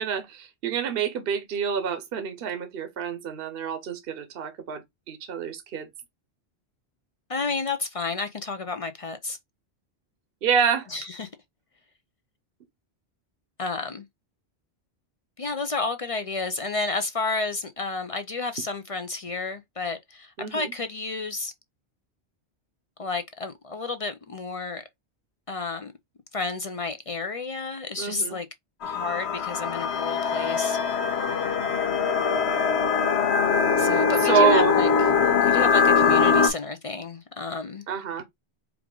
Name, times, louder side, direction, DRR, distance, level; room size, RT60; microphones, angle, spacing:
voice 1, 0.0-4.8 5.1-5.9 10.4-10.9 20.4-20.7 28.0-28.4 34.2-34.8 37.9-38.2, right 7 dB, 60° right, 0.9 m, -27 dB
voice 2, 7.3-9.4 10.9-11.3 13.6-14.0 15.4-21.5 23.0-24.8 25.5-25.9 26.3-28.5 28.8-30.8 33.8-34.9 35.4-37.8, left 3 dB, 45° left, 0.4 m, -31 dB
sound 1, 28.8-36.5, left 6 dB, 75° left, 1.0 m, -22 dB
4.6 x 2.5 x 3.7 m
omnidirectional pair, 1.1 m